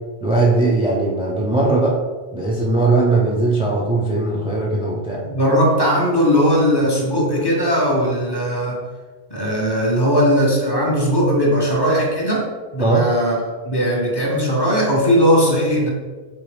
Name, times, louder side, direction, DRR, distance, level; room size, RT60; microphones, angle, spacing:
voice 1, 0.2-1.9 2.3-5.2 12.8-13.1, right 2 dB, 10° right, -4 dB, 0.4 m, -19 dB
voice 2, 5.2-8.8 9.3-12.5 12.7-13.3 13.6-15.9, equal, 25° left, -3 dB, 0.7 m, -18 dB
4.4 x 3.1 x 3.3 m, 1.4 s
omnidirectional pair, 1.1 m